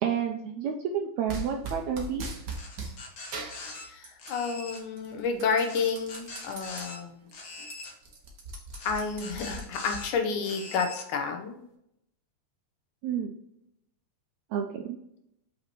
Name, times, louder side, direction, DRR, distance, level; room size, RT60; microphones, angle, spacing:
voice 1, 0.0-2.3 13.0-13.3 14.5-15.0, right 8 dB, 85° right, 4 dB, 1.6 m, -30 dB
sound 1, 1.3-3.0 3.3-4.5 4.8-6.8 7.3-7.4 7.6-10.0, right 3 dB, 60° right, 1.1 m, -39 dB
sound 2, 2.5-3.8 4.2-4.8 5.6-7.0 7.3-7.9 8.7-10.1 10.4-11.0, left 3 dB, 55° left, 1.8 m, -43 dB
voice 2, 3.8-7.2 8.8-11.6, left 5 dB, 75° left, 4 dB, 2.1 m, -30 dB
6.7 x 5.7 x 3.0 m, 0.78 s
omnidirectional pair, 3.8 m